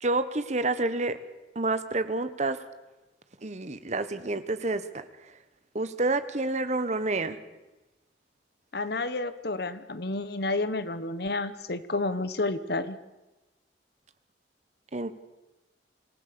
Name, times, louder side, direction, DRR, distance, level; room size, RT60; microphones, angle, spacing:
voice 1, 0.0-1.2 1.5-2.6 3.4-5.0 5.7-7.4 14.9-15.1, right 2 dB, 40° right, 12 dB, 1.1 m, -28 dB
voice 2, 8.7-13.0, left 2 dB, 60° left, 13 dB, 1.1 m, -30 dB
26.0 x 15.5 x 6.8 m, 1.1 s
head